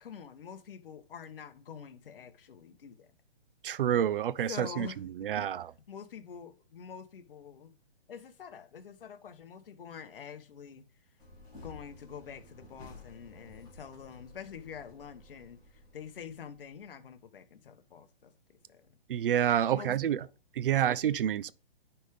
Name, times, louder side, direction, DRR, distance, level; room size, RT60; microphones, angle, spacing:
voice 1, 0.0-3.1 4.5-5.0 5.4-5.5 5.9-7.7 8.1-10.8 11.5-19.0 19.7-20.3 20.7-21.0, left 7 dB, 60° left, 1.1 m, -46 dB
voice 2, 3.6-4.9 5.2-5.7 19.1-20.2 20.6-21.5, right 10 dB, 60° right, 0.5 m, -28 dB
sound 1, 11.2-16.9, left 2 dB, 10° left, 2.4 m, -53 dB
10.0 x 3.5 x 3.4 m
hypercardioid pair, 155°, 31 cm